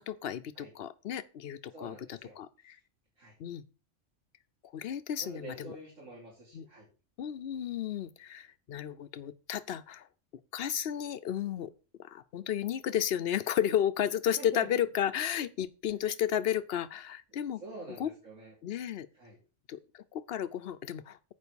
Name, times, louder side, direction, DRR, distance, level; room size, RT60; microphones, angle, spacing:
voice 1, 0.0-2.8 3.4-3.6 4.7-5.8 6.5-6.7 7.2-10.1 10.5-11.7 12.0-17.6 18.0-18.1 18.6-19.1 19.7-21.3, left 10 dB, 60° left, 0.8 m, -33 dB
voice 2, 1.7-2.4 2.7-2.8 3.2-3.3 5.2-6.9 14.4-14.7 17.4-18.5 19.1-19.4, right 2 dB, 90° right, 3.7 m, -47 dB
8.3 x 5.2 x 6.9 m
omnidirectional pair, 1.3 m